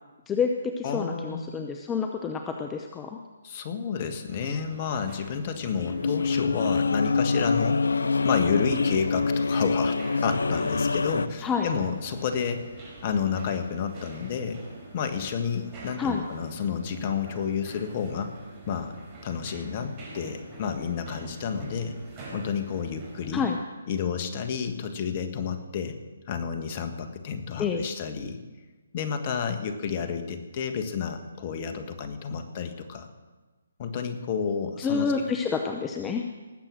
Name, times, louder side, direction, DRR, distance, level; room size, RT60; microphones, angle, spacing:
voice 1, 0.3-3.2 11.4-11.7 16.0-16.2 23.3-23.6 27.6-27.8 34.8-36.2, left 5 dB, 15° left, 4 dB, 0.7 m, -28 dB
voice 2, 0.8-1.5 3.4-7.8 8.2-14.6 14.9-18.3 18.7-18.9 19.2-21.9 22.3-23.4 23.9-26.0 26.3-28.4 28.9-33.1 33.8-35.3, left 6 dB, 35° left, 8 dB, 1.5 m, -30 dB
sound 1, 4.3-23.5, right 2 dB, 30° right, 4.7 m, -46 dB
sound 2, 5.8-11.3, left 4 dB, 75° left, 0.4 m, -25 dB
19.5 x 7.7 x 6.3 m, 1.3 s
figure-of-eight pair, 140°, 0 cm